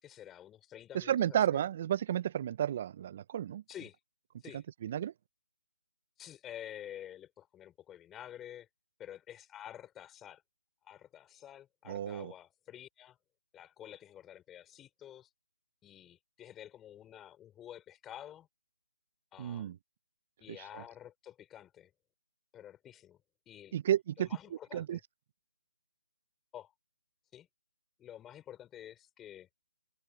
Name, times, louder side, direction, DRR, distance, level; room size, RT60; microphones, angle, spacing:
voice 1, 0.0-1.6 3.7-4.0 4.4-4.6 6.2-8.7 9.0-10.4 10.8-13.2 13.5-15.3 15.8-18.5 19.3-19.7 20.4-21.9 22.5-23.2 23.5-23.8 24.2-25.0 26.5-26.7 27.3-27.5 28.0-29.5, left 11 dB, 10° left, 5.4 m, -49 dB
voice 2, 0.9-3.6 4.5-5.1 11.9-12.3 19.4-19.8 20.5-20.8 23.7-24.3 24.7-25.0, right 10 dB, 40° right, 0.7 m, -32 dB
hypercardioid pair, 155°, 0 cm